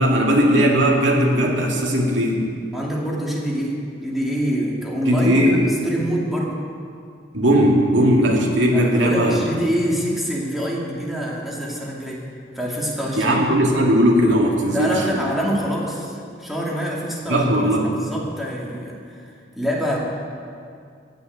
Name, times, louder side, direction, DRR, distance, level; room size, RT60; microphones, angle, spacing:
voice 1, 0.0-2.4 5.1-5.6 7.3-9.4 13.2-15.3 17.3-17.9, equal, 90° right, -1 dB, 2.3 m, -18 dB
voice 2, 2.7-6.6 8.7-12.3 12.5-13.4 14.7-19.2 19.5-20.0, equal, ahead, -4 dB, 2.4 m, -26 dB
15.5 x 6.5 x 9.3 m, 2.3 s
head